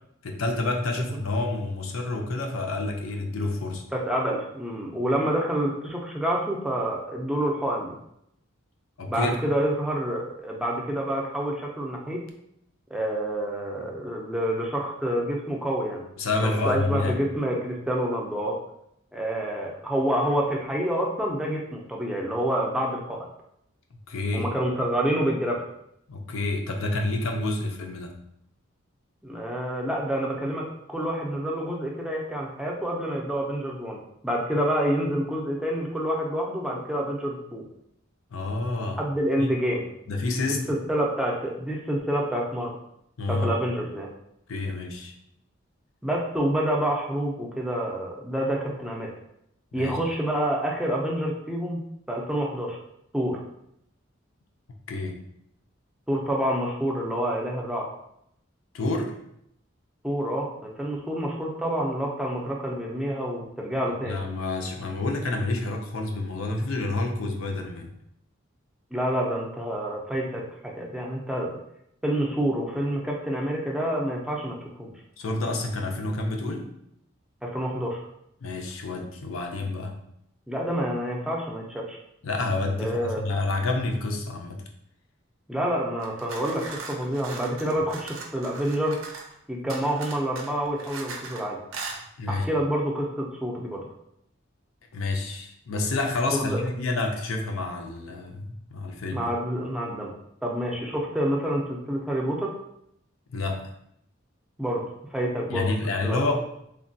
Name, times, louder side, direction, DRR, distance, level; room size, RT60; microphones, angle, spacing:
voice 1, 0.2-3.8 9.0-9.4 16.2-17.2 24.1-24.5 26.1-28.2 38.3-39.0 39.4-39.5 40.1-40.7 43.2-43.5 44.5-45.1 49.7-50.0 54.9-55.2 58.7-59.2 64.0-67.9 75.2-76.7 78.4-79.9 82.2-84.6 92.2-92.5 94.9-99.3 103.3-103.6 105.5-106.4, left 2 dB, 90° left, 3 dB, 0.5 m, -28 dB
voice 2, 3.9-8.0 9.1-12.2 12.9-16.0 16.4-18.6 19.1-23.2 24.3-25.6 29.2-34.0 34.2-37.6 39.0-39.8 40.4-42.7 43.3-44.1 46.0-49.1 49.7-51.8 52.1-52.8 53.1-53.4 56.1-57.9 60.0-64.2 68.9-71.5 72.0-74.9 77.4-78.0 80.5-82.0 82.8-83.2 85.5-89.0 89.5-91.6 92.3-93.8 96.3-96.6 99.1-100.1 100.4-102.5 104.6-104.8 105.1-105.7 106.0-106.4, equal, 5° right, -2 dB, 0.4 m, -28 dB
sound 1, 86.0-89.3 89.7-91.4 91.7-92.0, right 4 dB, 85° right, 0.5 m, -39 dB
3.2 x 2.2 x 2.6 m, 0.76 s
head